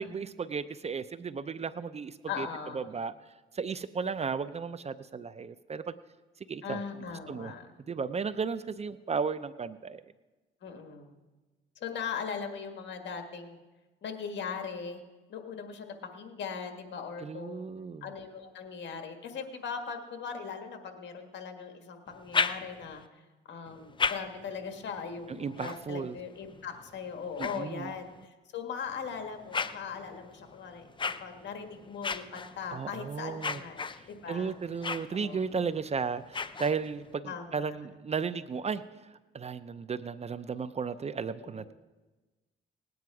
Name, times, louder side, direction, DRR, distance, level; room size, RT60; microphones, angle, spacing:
voice 1, 0.0-2.5 2.7-3.1 3.5-5.9 6.5-7.5 7.9-10.0 17.2-18.1 25.3-26.2 27.4-27.9 32.7-33.6 33.9-41.7, right 5 dB, 35° right, 14 dB, 0.5 m, -35 dB
voice 2, 2.3-2.9 6.6-7.7 10.6-11.2 11.8-13.6 14.0-15.0 15.3-17.7 18.0-23.0 23.5-30.9 31.2-34.5 35.1-35.5 37.2-37.9 41.4-41.7, left 6 dB, 65° left, 5 dB, 1.7 m, -39 dB
sound 1, 22.1-23.1 23.7-28.3 28.9-37.1, left 5 dB, 25° left, 0.5 m, -38 dB
18.5 x 9.4 x 4.8 m, 1.2 s
cardioid pair, 90°, 20 cm